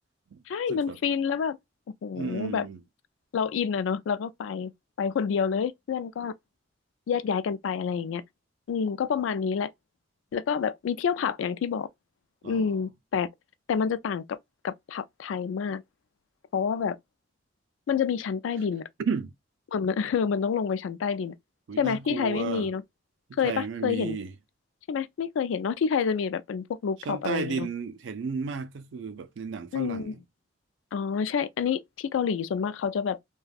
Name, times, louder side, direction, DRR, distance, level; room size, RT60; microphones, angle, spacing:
voice 1, 0.5-1.6 2.0-2.7 3.3-4.7 5.0-6.3 7.1-8.2 8.7-9.7 10.3-11.9 12.4-13.3 13.7-14.4 14.6-15.8 16.5-17.0 17.9-18.8 19.7-21.3 21.8-22.8 23.4-24.2 24.9-27.7 29.7-30.1 30.9-33.2, left 6 dB, 90° left, 0.3 m, -28 dB
voice 2, 2.2-2.8 12.4-12.8 19.1-19.3 21.7-22.7 23.3-24.3 27.0-30.2, right 5 dB, 70° right, 0.4 m, -33 dB
3.3 x 2.2 x 2.3 m
head